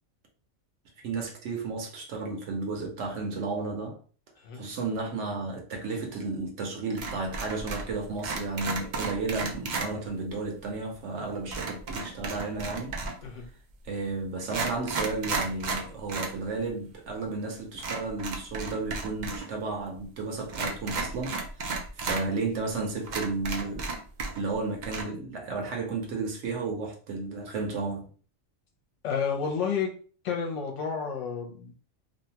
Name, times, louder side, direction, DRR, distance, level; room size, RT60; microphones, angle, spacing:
voice 1, 1.0-4.0 4.5-13.0 13.8-23.9 24.3-28.1, right 3 dB, 65° right, 0.9 m, -33 dB
sound 1, 7.0-7.9 8.2-9.9 11.5-13.3 14.0-14.1 14.4-16.4 16.7-16.8 17.8-19.5 19.7-19.8 20.5-22.2 22.7-22.8 23.1-24.5 24.8-25.0, right 3 dB, 85° right, 0.4 m, -33 dB
voice 2, 29.0-29.9 30.2-31.7, left 6 dB, 65° left, 0.9 m, -30 dB
2.7 x 2.2 x 2.8 m
omnidirectional pair, 1.4 m